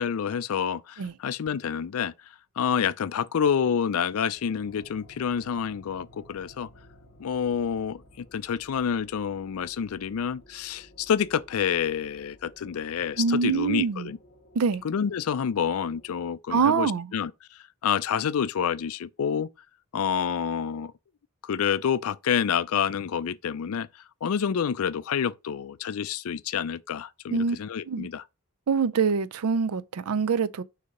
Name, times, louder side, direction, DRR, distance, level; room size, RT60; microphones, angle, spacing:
voice 1, 0.0-2.1 2.6-6.7 7.2-14.2 14.8-19.5 19.9-20.9 21.4-23.9 24.2-28.2, left 7 dB, 75° left, 0.4 m, -28 dB
sound 1, 4.3-16.3, equal, 40° left, 1.4 m, -55 dB
voice 2, 13.2-14.1 14.5-14.8 16.5-17.1 27.3-27.6 27.9-28.1 28.7-30.6, right 5 dB, 80° right, 0.4 m, -24 dB
6.6 x 2.8 x 5.3 m
head